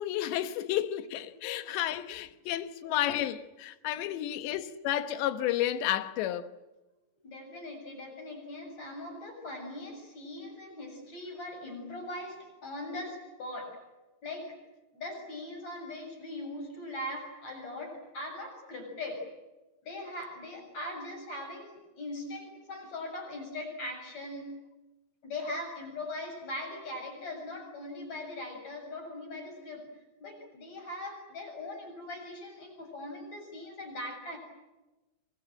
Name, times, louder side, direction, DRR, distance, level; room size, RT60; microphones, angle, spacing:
voice 1, 0.0-6.5, left 12 dB, 85° left, 3.5 m, -31 dB
voice 2, 3.9-4.2 7.2-13.8 14.2-14.5 14.9-19.3 19.8-24.5 25.2-29.9 30.2-34.4, left 1 dB, 40° left, 8.3 m, -40 dB
28.5 x 23.0 x 8.9 m
omnidirectional pair, 5.0 m